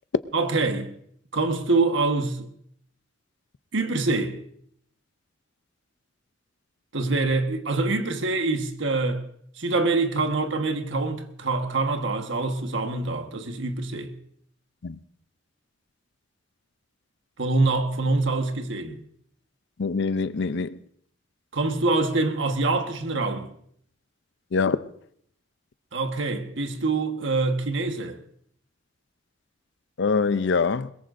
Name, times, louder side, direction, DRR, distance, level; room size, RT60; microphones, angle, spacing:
voice 1, 0.3-0.9 1.3-2.5 3.7-4.4 6.9-9.2 9.6-14.1 17.4-19.0 21.5-23.5 25.9-28.2, right 3 dB, 65° right, 1.4 m, -25 dB
voice 2, 19.8-20.8 24.5-24.9 30.0-30.9, left 4 dB, 65° left, 0.5 m, -24 dB
22.0 x 21.0 x 2.6 m
head